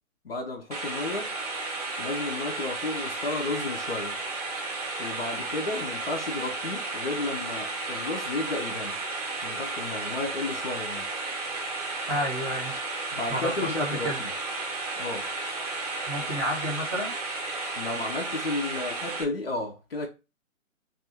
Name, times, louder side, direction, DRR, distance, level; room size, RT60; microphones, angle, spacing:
voice 1, 0.2-1.3 2.0-4.2 5.0-9.0 9.4-11.0 13.1-14.3 15.0-15.3 17.8-20.1, left 2 dB, 45° left, 0.7 m, -33 dB
sound 1, 0.7-19.2, right 3 dB, 30° right, 0.6 m, -33 dB
voice 2, 12.0-12.7 13.3-14.2 16.1-17.1, equal, 5° right, 0.9 m, -30 dB
2.6 x 2.4 x 4.2 m
figure-of-eight pair, 140°, 42 cm